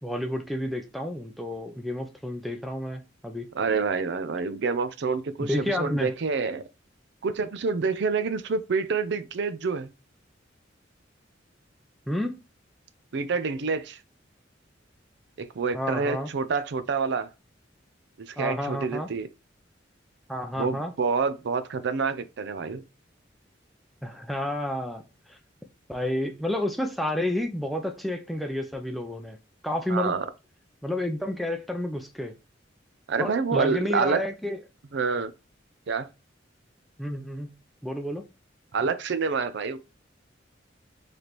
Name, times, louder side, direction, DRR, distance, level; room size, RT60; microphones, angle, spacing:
voice 1, 0.0-3.5 5.4-6.1 12.1-12.4 15.7-16.3 18.4-19.1 20.3-20.9 24.0-25.0 25.3-25.4 25.9-29.4 29.6-30.2 30.8-32.3 33.2-34.6 37.0-37.5 37.8-38.3, left 1 dB, ahead, 0.5 m, -30 dB
voice 2, 3.5-6.6 7.2-9.9 13.1-14.0 15.4-17.3 18.2-19.3 20.6-22.8 29.9-30.2 33.1-34.3 34.9-35.3 35.9-36.1 38.7-39.8, right 4 dB, 65° right, 0.5 m, -27 dB
4.1 x 3.3 x 2.9 m
head